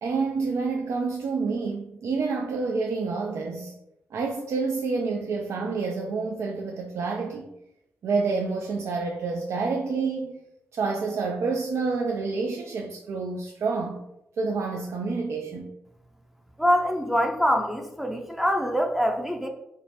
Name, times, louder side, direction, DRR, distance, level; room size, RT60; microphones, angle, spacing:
voice 1, 0.0-3.7 4.1-7.4 8.0-10.4 10.7-14.0 14.4-15.7, right 4 dB, 65° right, 1 dB, 0.3 m, -28 dB
voice 2, 16.6-19.5, equal, 5° right, 2 dB, 0.5 m, -24 dB
2.7 x 2.0 x 3.2 m, 0.86 s
hypercardioid pair, 40°, 5 cm